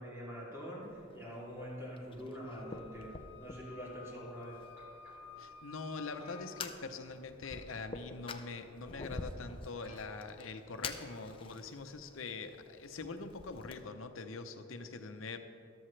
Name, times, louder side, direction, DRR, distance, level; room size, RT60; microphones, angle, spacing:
voice 1, 0.0-4.7, equal, 15° right, -7 dB, 2.8 m, -45 dB
Fire, 0.8-13.8, left 4 dB, 25° left, 0.5 m, -49 dB
Wind instrument woodwind instrument, 2.4-6.7, left 6 dB, 65° left, 1.4 m, -53 dB
sound 1, 4.8-5.4 6.2-7.1 7.4-7.7 8.6-8.7 9.2-9.3 9.5-9.6 9.8-10.5 11.0-11.3 11.6-11.7, equal, 75° right, 2.9 m, -58 dB
voice 2, 5.4-15.4, left 4 dB, 85° left, 7 dB, 0.8 m, -44 dB
13.5 x 12.5 x 3.3 m, 2.6 s
head